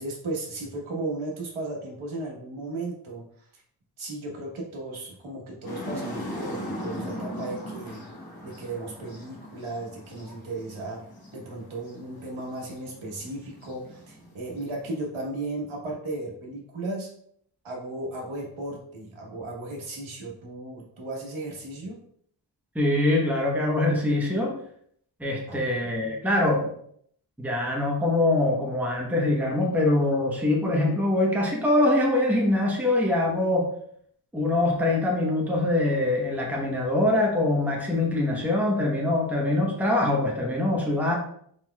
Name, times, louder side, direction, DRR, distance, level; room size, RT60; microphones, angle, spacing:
voice 1, 0.0-3.2 3.5-3.6 4.0-8.0 8.4-11.0 11.3-17.1 17.6-21.9 25.5-26.3, right 2 dB, 75° right, -1 dB, 1.3 m, -35 dB
sound 1, 5.6-15.0, equal, 50° left, 1.3 m, -39 dB
voice 2, 22.7-24.6 25.2-26.7 27.4-33.7 34.3-41.2, left 2 dB, 5° right, -2 dB, 0.9 m, -23 dB
4.5 x 4.1 x 2.3 m, 0.65 s
wide cardioid pair, 120°, 49 cm